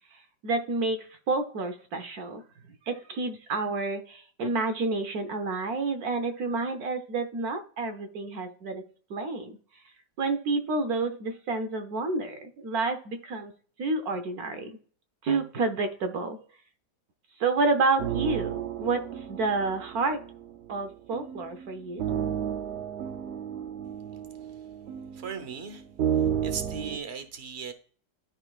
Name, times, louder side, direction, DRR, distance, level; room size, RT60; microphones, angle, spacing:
voice 1, 0.4-2.4 2.9-9.5 10.2-13.5 13.8-14.7 15.2-16.4 17.4-20.2 20.7-22.1, right 3 dB, 60° right, 1.2 m, -29 dB
sound 1, 18.0-27.0, right 9 dB, 85° right, 0.6 m, -33 dB
voice 2, 25.1-25.8 26.4-27.7, right 6 dB, 45° right, 0.9 m, -37 dB
12.0 x 4.2 x 2.4 m
omnidirectional pair, 2.0 m